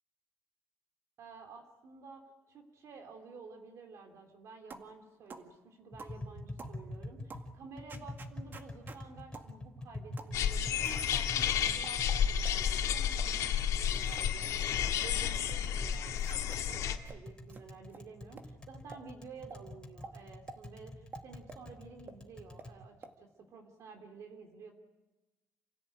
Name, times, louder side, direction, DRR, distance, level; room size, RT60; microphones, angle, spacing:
voice 1, 1.2-24.7, right 4 dB, 70° right, 3 dB, 3.2 m, -52 dB
sound 1, 4.7-4.9 5.3-5.5 6.0-6.2 6.6-6.8 7.3-7.5 7.9-9.0 9.3-9.5 10.2-10.4 10.8-11.2 11.8-12.6 13.1-13.3 13.8-14.3 14.6-15.6 16.1-16.6 17.1-17.2 17.5-17.6 17.9-18.0 18.4-18.5 18.9-19.0 19.5-19.6 20.0-20.2 20.5-20.6 21.1-21.6 22.1-22.2 22.6-22.7 23.0-23.1, right 4 dB, 40° right, 2.1 m, -50 dB
Tap, 5.9-22.7, left 1 dB, 15° left, 3.6 m, -47 dB
sound 2, 10.3-17.0, left 8 dB, 90° left, 1.9 m, -31 dB
28.5 x 16.5 x 9.0 m, 1.1 s
cardioid pair, 130°, 5 cm